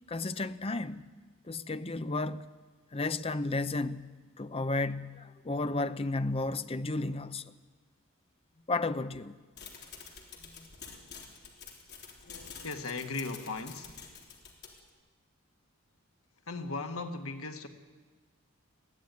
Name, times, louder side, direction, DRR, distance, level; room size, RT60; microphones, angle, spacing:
voice 1, 0.1-1.1 1.5-2.5 2.9-7.5 8.7-9.3 10.6-10.7, left 2 dB, 25° left, 0.7 m, -33 dB
sound 1, 9.6-14.9, left 6 dB, 50° left, 3.5 m, -48 dB
voice 2, 12.2-14.0 16.5-17.7, left 3 dB, 80° left, 1.8 m, -38 dB
21.5 x 15.0 x 9.6 m
head